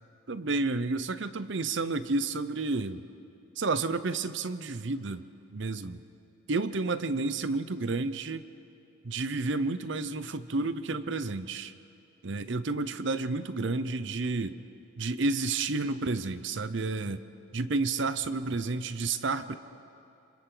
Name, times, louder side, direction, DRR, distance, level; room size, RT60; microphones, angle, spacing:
voice 1, 0.3-3.0 3.6-5.2 5.5-6.0 6.5-8.4 9.0-11.7 12.2-14.6 15.0-17.2 17.5-19.5, right 3 dB, 55° right, 13 dB, 0.7 m, -30 dB
29.0 x 26.5 x 3.9 m, 2.7 s
head